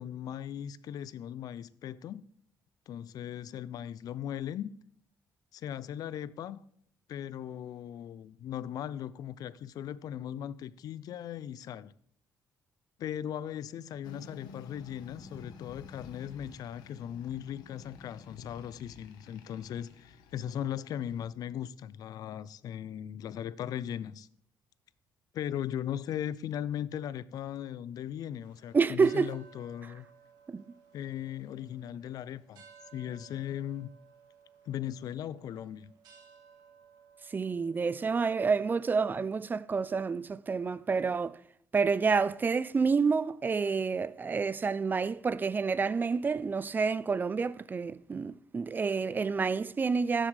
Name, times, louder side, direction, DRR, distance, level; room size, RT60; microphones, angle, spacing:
voice 1, 0.0-2.2 2.9-4.7 5.5-6.6 7.1-11.9 13.0-24.3 25.3-30.1 30.9-32.6 32.9-33.9 34.7-35.9, left 10 dB, 65° left, 0.4 m, -38 dB
sound 1, 14.0-21.3, left 5 dB, 80° left, 1.1 m, -51 dB
sound 2, 28.4-39.3, right 7 dB, 75° right, 1.7 m, -59 dB
voice 2, 28.7-29.3 30.5-30.8 37.3-41.4 41.7-50.3, right 5 dB, 25° right, 0.4 m, -29 dB
12.5 x 7.5 x 3.3 m
cardioid pair, 85°, 7 cm